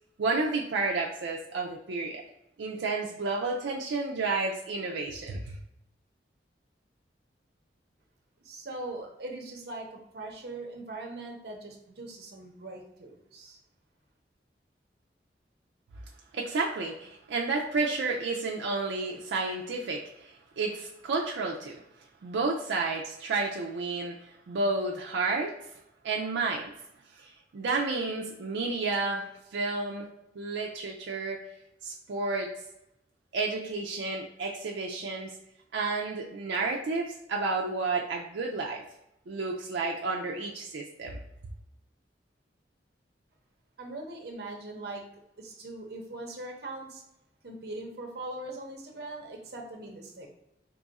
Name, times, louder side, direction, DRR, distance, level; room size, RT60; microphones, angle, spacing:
voice 1, 0.2-2.2 2.6-5.6 16.3-21.8 22.2-25.5 26.0-26.7 27.2-30.1 30.4-31.4 31.8-32.5 33.3-35.3 35.7-38.8 39.3-41.2, right 3 dB, 85° right, -1 dB, 0.4 m, -31 dB
voice 2, 8.4-13.6 43.8-45.0 45.4-47.0 47.4-50.3, right 2 dB, 60° right, 1 dB, 0.7 m, -41 dB
3.0 x 2.4 x 4.0 m, 0.84 s
head